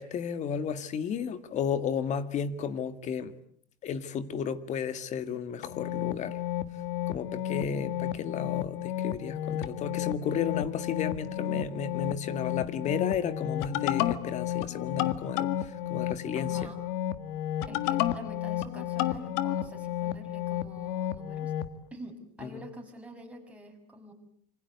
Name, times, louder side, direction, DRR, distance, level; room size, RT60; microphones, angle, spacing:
voice 1, 0.0-3.3 3.8-6.4 7.1-15.5 15.9-16.5 22.4-22.6, left 7 dB, 35° left, 12 dB, 1.9 m, -33 dB
sound 1, 5.6-21.7, left 12 dB, 65° left, 1.7 m, -32 dB
voice 2, 16.3-16.9 17.6-21.5 21.9-24.1, equal, 5° right, 2 dB, 6.2 m, -46 dB
27.0 x 25.5 x 8.2 m, 0.62 s
supercardioid pair, 145°, 21 cm